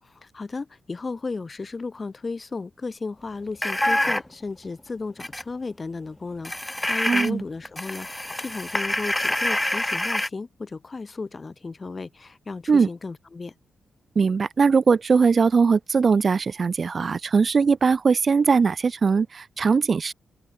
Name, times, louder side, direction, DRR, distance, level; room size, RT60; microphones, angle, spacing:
voice 1, 0.0-13.5, left 4 dB, 40° left, 4.5 m, -34 dB
sound 1, 3.6-4.3 5.2-5.4 6.4-7.3 7.7-10.3, left 1 dB, 15° left, 1.8 m, -26 dB
voice 2, 7.1-7.4 12.7-12.9 14.2-20.1, right 5 dB, 50° right, 5.4 m, -20 dB
open air
supercardioid pair, 45°, 0 cm